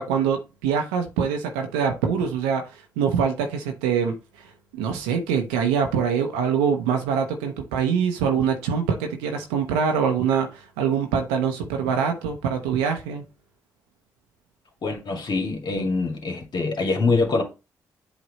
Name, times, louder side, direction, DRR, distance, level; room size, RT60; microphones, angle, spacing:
voice 1, 0.0-2.6 3.0-4.5 4.7-13.2, right 7 dB, 90° right, 0.7 m, -24 dB
voice 2, 14.8-17.4, left 3 dB, 60° left, 2.0 m, -24 dB
8.0 x 3.0 x 4.1 m
hypercardioid pair, 40°, 9 cm